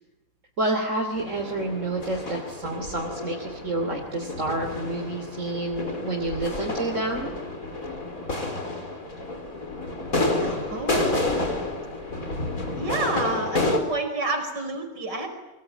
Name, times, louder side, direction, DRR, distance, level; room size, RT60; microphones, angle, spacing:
voice 1, 0.6-7.3, right 2 dB, 45° right, 1 dB, 3.4 m, -29 dB
sound 1, 1.2-13.8, left 2 dB, 50° left, 4.9 m, -30 dB
voice 2, 10.4-11.1 12.8-15.3, right 2 dB, 85° right, 5 dB, 5.6 m, -29 dB
26.0 x 25.0 x 9.0 m, 0.99 s
omnidirectional pair, 1.8 m